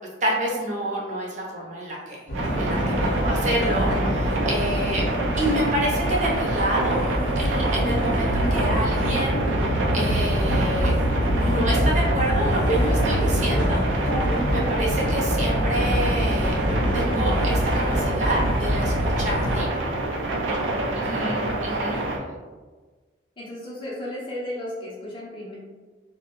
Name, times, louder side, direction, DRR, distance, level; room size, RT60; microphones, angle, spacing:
voice 1, 0.2-2.2 2.6-5.0 5.4-7.0 7.4-9.4 9.9-10.9 11.4-13.8 14.5-16.6 16.9-17.6 17.9-19.8 20.4-20.6 21.0-22.0, right 1 dB, 40° right, -3 dB, 0.6 m, -28 dB
sound 1, 2.3-19.6, equal, 75° left, 0.6 m, -24 dB
sound 2, 2.3-22.2, right 2 dB, 90° right, 0.4 m, -28 dB
voice 2, 20.4-21.1 23.4-25.5, left 1 dB, 25° left, -6 dB, 0.5 m, -35 dB
2.5 x 2.1 x 2.9 m, 1.4 s
head